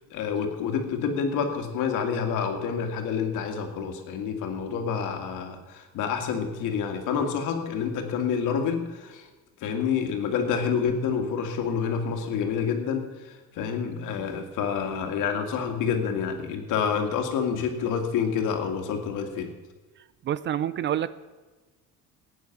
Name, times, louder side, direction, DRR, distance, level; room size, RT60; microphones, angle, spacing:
voice 1, 0.0-9.3 9.6-19.5, left 6 dB, 75° left, 5 dB, 2.1 m, -28 dB
voice 2, 20.2-21.1, right 10 dB, 35° right, 16 dB, 0.4 m, -27 dB
16.5 x 9.5 x 6.0 m, 1.3 s
cardioid pair, 155°, 31 cm